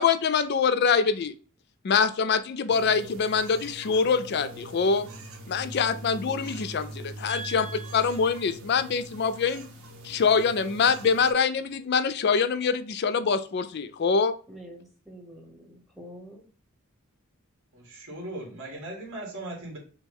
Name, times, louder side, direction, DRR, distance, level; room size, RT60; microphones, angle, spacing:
voice 1, 0.0-1.3 1.8-5.1 5.5-7.7 7.9-9.6 10.0-14.3, left 5 dB, 50° left, 13 dB, 0.4 m, -24 dB
sound 1, 2.7-11.3, right 1 dB, 75° right, 1.0 m, -42 dB
voice 2, 7.2-8.4 14.5-16.4, right 2 dB, ahead, -1 dB, 1.0 m, -43 dB
voice 3, 17.7-19.8, right 1 dB, 60° right, -2 dB, 1.9 m, -38 dB
5.9 x 2.2 x 3.5 m, 0.39 s
head